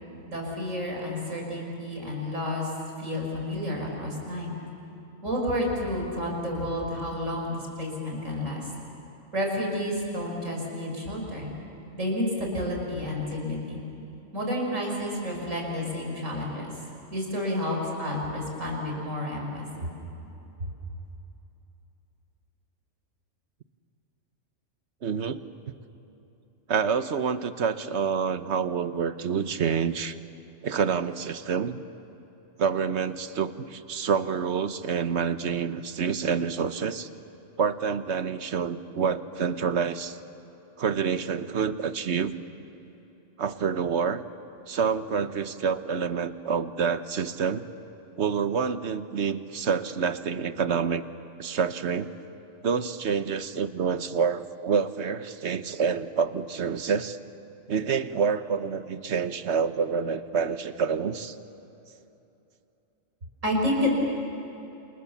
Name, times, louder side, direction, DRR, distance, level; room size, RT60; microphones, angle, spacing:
voice 1, 0.3-2.7 3.0-4.6 5.2-8.7 9.3-11.5 12.0-13.8 14.3-16.7 17.1-19.9 20.6-20.7 63.4-63.9, left 1 dB, 85° right, -1 dB, 6.0 m, -30 dB
voice 2, 25.0-25.4 26.7-30.1 30.6-31.8 32.6-37.1 37.6-40.2 40.8-42.3 43.4-44.2 44.7-47.6 48.2-51.0 51.4-52.1 52.6-57.2 57.7-61.3, right 6 dB, 60° right, 11 dB, 1.3 m, -27 dB
29.5 x 28.0 x 7.2 m, 3.0 s
omnidirectional pair, 1.3 m